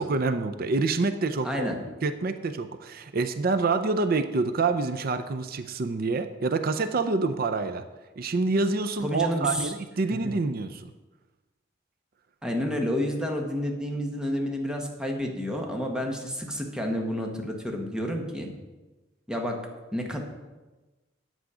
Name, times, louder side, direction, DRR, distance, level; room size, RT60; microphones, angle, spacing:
voice 1, 0.0-1.7 2.0-7.8 8.2-10.9, right 3 dB, 50° right, 9 dB, 0.5 m, -27 dB
voice 2, 1.4-1.8 9.0-9.7 10.1-10.2 12.4-18.5 19.3-19.6 19.9-20.2, equal, 5° right, 1 dB, 1.3 m, -30 dB
9.2 x 8.3 x 4.9 m, 1.2 s
head